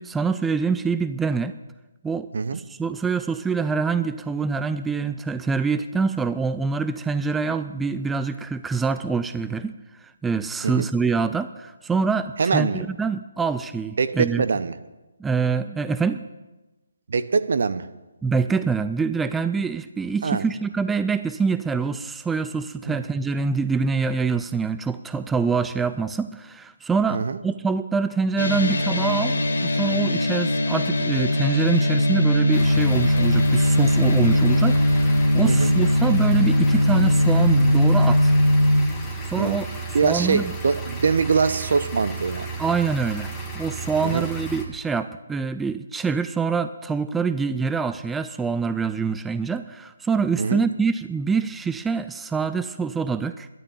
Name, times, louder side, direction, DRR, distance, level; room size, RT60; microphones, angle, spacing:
voice 1, 0.0-1.5 2.0-9.7 10.2-14.5 15.2-16.2 18.2-38.3 39.3-39.7 40.0-40.5 42.6-53.5, right 5 dB, 5° right, 11 dB, 0.4 m, -25 dB
voice 2, 12.4-12.8 14.0-14.8 17.1-17.9 20.2-20.5 22.9-23.0 27.1-27.4 35.4-35.7 39.4-39.6 39.9-42.5 44.0-44.3 50.4-50.7, right 5 dB, 60° right, 13 dB, 0.8 m, -23 dB
sound 1, 28.4-38.8, left 1 dB, 65° left, 2.5 m, -20 dB
sound 2, 32.5-44.7, right 3 dB, 10° left, 1.8 m, -33 dB
12.0 x 11.0 x 7.1 m, 1.1 s
figure-of-eight pair, 140°, 0 cm